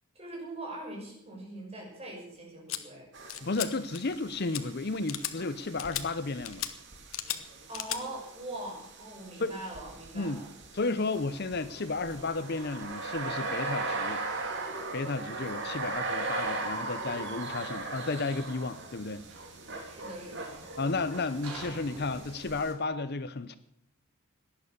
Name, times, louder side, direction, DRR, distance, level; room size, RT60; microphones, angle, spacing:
voice 1, 0.1-3.1 7.7-10.5 19.8-20.6, right 1 dB, 25° right, -2 dB, 6.3 m, -42 dB
sound 1, 2.7-2.8 3.3-3.7 3.9-4.2 4.5-4.6 5.1-5.3 5.8-6.0 6.5-6.7 7.1-7.4 7.7-8.0, left 12 dB, 65° left, 1.3 m, -35 dB
sound 2, 3.1-22.7, right 3 dB, 55° right, 2.7 m, -39 dB
voice 2, 3.4-6.6 9.4-9.5 10.1-10.4 10.7-14.2 14.9-19.2 20.8-23.6, left 3 dB, 45° left, 13 dB, 0.7 m, -33 dB
sound 3, 11.1-22.3, right 2 dB, 80° right, 4.0 m, -53 dB
18.0 x 11.0 x 6.8 m, 0.78 s
head